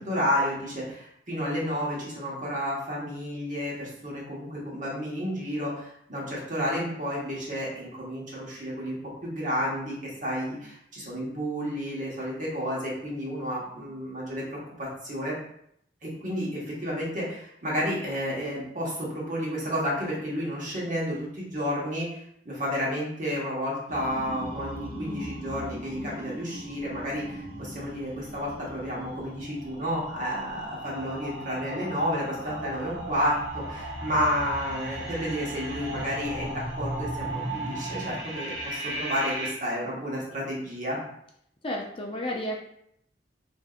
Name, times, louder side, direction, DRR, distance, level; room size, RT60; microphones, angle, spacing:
voice 1, 0.0-9.0 9.2-15.3 16.0-41.0, equal, 45° right, -5 dB, 1.2 m, -31 dB
sound 1, 23.9-39.5, right 1 dB, 90° right, 0.9 m, -36 dB
voice 2, 41.6-42.6, left 1 dB, 30° left, 0 dB, 0.4 m, -32 dB
4.0 x 2.6 x 2.4 m, 0.72 s
head